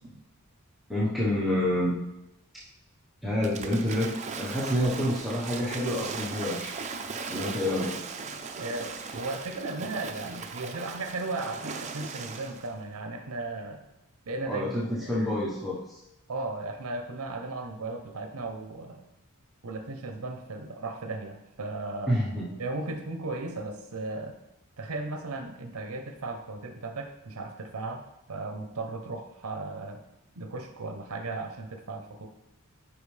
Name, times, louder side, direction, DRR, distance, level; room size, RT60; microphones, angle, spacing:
voice 1, 0.9-2.0 3.2-6.8 7.3-8.0 14.5-16.0 22.1-22.5, left 1 dB, ahead, -8 dB, 1.1 m, -28 dB
Waves surf / Splash splatter, 3.4-12.7, right 4 dB, 35° right, 0.6 m, -38 dB
voice 2, 8.6-13.9 14.3-15.1 16.3-19.0 19.6-22.2 22.6-24.4 24.8-30.0 30.4-32.3, right 2 dB, 75° right, 5 dB, 0.7 m, -36 dB
8.7 x 5.0 x 3.3 m, 0.90 s
head